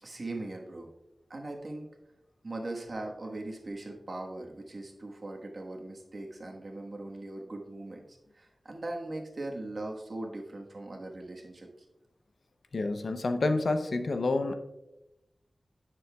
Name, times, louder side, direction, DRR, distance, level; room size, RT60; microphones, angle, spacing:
voice 1, 0.0-0.9 1.3-2.0 2.4-11.7, right 2 dB, 55° right, 1 dB, 1.3 m, -40 dB
voice 2, 12.7-14.5, left 3 dB, 75° left, 8 dB, 0.6 m, -28 dB
10.0 x 6.8 x 2.3 m, 0.94 s
wide cardioid pair, 70°, 0 cm